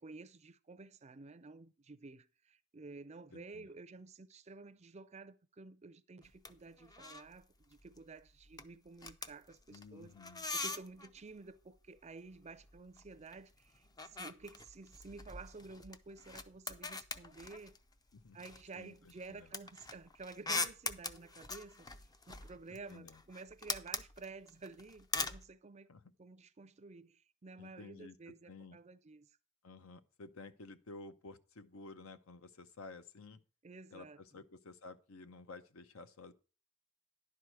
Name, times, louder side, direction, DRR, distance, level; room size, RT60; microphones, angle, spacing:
voice 1, 0.0-10.1 10.5-17.8 18.3-21.9 22.3-25.9 26.2-29.3 33.6-34.2, right 3 dB, 30° right, 0.5 m, -52 dB
voice 2, 3.3-3.7 9.7-10.5 18.1-18.4 18.8-19.5 22.7-23.2 25.9-26.0 27.6-28.8 29.6-33.4 33.9-36.3, left 3 dB, 70° left, 0.7 m, -53 dB
sound 1, 6.2-6.5 6.8-7.4 7.6-8.0 8.3-11.2 12.3-13.4 13.7-17.9 18.4-25.4, left 3 dB, 20° left, 0.5 m, -42 dB
11.0 x 4.8 x 5.9 m
head